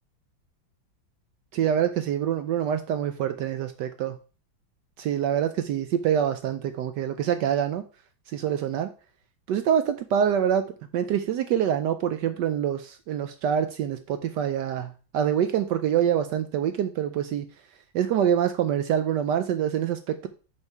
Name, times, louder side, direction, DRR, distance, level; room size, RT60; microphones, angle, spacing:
voice 1, 1.5-4.2 5.0-7.8 8.3-8.9 9.5-10.6 10.9-17.5 17.9-20.3, right 9 dB, 75° right, 9 dB, 1.1 m, -25 dB
5.4 x 5.4 x 4.6 m, 0.36 s
omnidirectional pair, 2.1 m